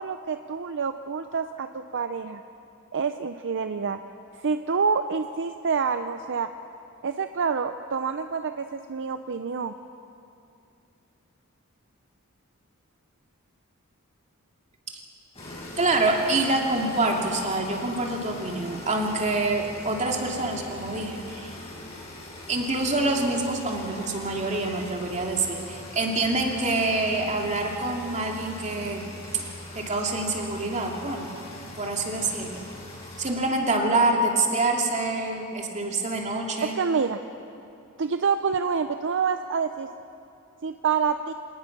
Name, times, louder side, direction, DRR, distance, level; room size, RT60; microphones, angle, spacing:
voice 1, 0.0-2.4 2.9-4.0 4.4-6.5 7.0-9.7 36.6-37.2 38.0-39.9 40.6-41.3, right 5 dB, 55° right, 9 dB, 0.6 m, -27 dB
sound 1, 15.3-33.3, left 1 dB, 30° left, 6.8 m, -41 dB
voice 2, 15.8-21.5 22.5-29.0 29.3-31.3 31.8-32.6 33.2-36.7, right 2 dB, 35° right, 1 dB, 2.6 m, -26 dB
27.0 x 18.5 x 6.0 m, 2.7 s
head